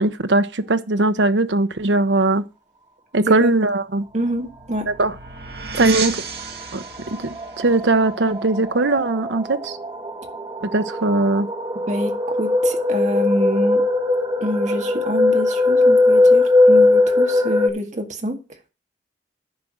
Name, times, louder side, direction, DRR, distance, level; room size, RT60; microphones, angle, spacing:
voice 1, 0.0-2.4 3.1-4.1 4.9-5.1 5.8-6.1 6.7-6.8 7.2-9.8 10.7-11.5, right 2 dB, 80° right, 0.9 m, -19 dB
voice 2, 3.2-3.5 4.1-4.9 5.7-6.0 11.9-13.8 14.4-18.4, right 1 dB, 40° right, 1.8 m, -26 dB
sound 1, 4.0-9.3, right 5 dB, 60° right, 2.2 m, -34 dB
sound 2, 6.4-6.5 6.8-17.7, left 2 dB, 20° right, 1.3 m, -19 dB
10.5 x 5.0 x 5.9 m
head